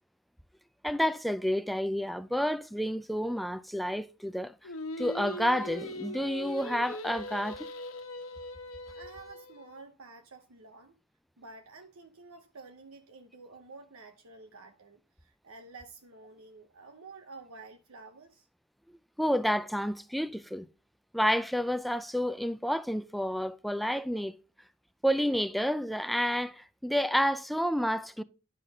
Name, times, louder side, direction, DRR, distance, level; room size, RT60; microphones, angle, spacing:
voice 1, 0.8-4.6 5.0-7.7 19.2-20.7 21.1-24.3 25.0-28.2, equal, ahead, 0.4 m, -30 dB
Singing, 4.6-9.8, left 2 dB, 80° left, 1.1 m, -40 dB
voice 2, 8.9-11.0 11.4-18.5, right 3 dB, 80° right, 0.9 m, -50 dB
11.0 x 3.8 x 6.5 m
head